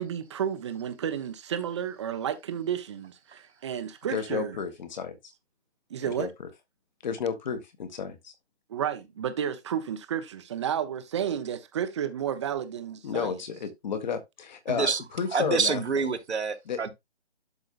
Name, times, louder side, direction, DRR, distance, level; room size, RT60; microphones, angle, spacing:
voice 1, 0.0-4.6 5.9-6.3 8.7-13.3, right 9 dB, 25° right, 0.9 m, -32 dB
voice 2, 4.1-5.2 6.2-6.3 7.0-7.6 8.0-8.1 13.0-15.8 16.6-16.8, left 6 dB, 40° left, 1.8 m, -31 dB
voice 3, 14.7-15.0 15.3-16.9, right 5 dB, 75° right, 1.9 m, -27 dB
12.0 x 4.8 x 2.4 m
hypercardioid pair, 155°, 34 cm